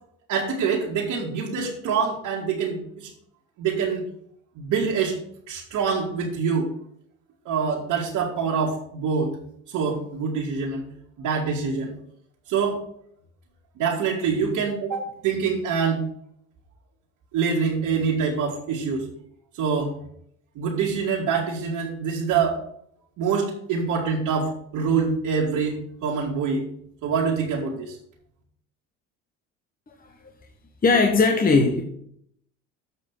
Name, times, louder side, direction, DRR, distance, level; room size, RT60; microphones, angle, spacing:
voice 1, 0.3-3.1 3.6-4.0 4.6-5.2 5.5-6.7 7.5-9.3 9.7-10.9 11.2-11.9 12.5-12.8 13.8-16.0 17.3-19.1 19.5-19.9 20.6-22.6 23.2-26.7 27.0-28.0, right 5 dB, 60° right, -6 dB, 2.2 m, -25 dB
voice 2, 30.8-31.8, left 4 dB, 25° left, 4 dB, 1.3 m, -19 dB
7.8 x 5.1 x 7.2 m, 0.68 s
hypercardioid pair, 70°, 36 cm